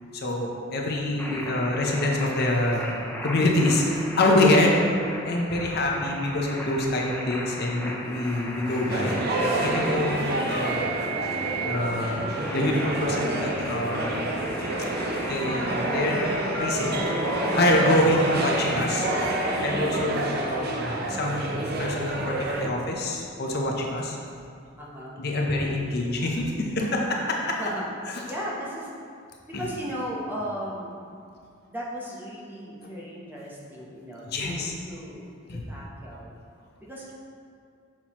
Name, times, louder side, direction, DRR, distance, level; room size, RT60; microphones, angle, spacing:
voice 1, 0.1-3.0 3.2-4.7 5.2-9.2 9.6-10.9 11.6-14.2 15.3-16.3 16.6-17.0 17.6-19.1 19.6-24.2 25.2-27.6 28.1-28.2 29.5-29.7 34.3-34.7 35.5-35.6, left 1 dB, 55° left, 0 dB, 0.7 m, -26 dB
sound 1, 1.2-19.7, equal, 10° left, 0.5 m, -36 dB
sound 2, 8.9-22.7, right 1 dB, 55° right, 0.6 m, -28 dB
voice 2, 9.6-10.1 24.8-25.2 27.6-27.9 28.3-28.9 29.5-30.9 31.7-35.3 35.7-36.4 36.9-37.1, equal, 10° right, -5 dB, 0.8 m, -36 dB
5.9 x 5.9 x 3.0 m, 2.4 s
head